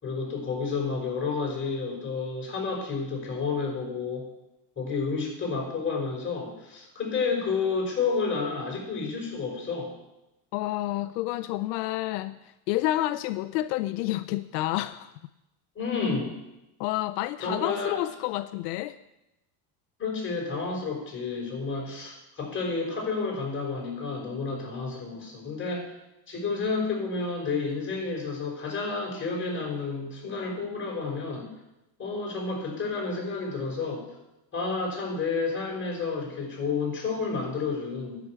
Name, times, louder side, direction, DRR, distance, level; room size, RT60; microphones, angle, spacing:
voice 1, 0.0-4.3 4.7-9.9 15.7-16.3 17.4-18.0 20.0-25.8 26.3-31.5 32.0-34.0 34.5-38.2, left 4 dB, 25° left, -1 dB, 5.2 m, -30 dB
voice 2, 10.5-15.1 16.8-19.0, left 16 dB, 85° left, 12 dB, 0.6 m, -29 dB
11.0 x 6.1 x 8.4 m, 0.94 s
supercardioid pair, 110°, 47 cm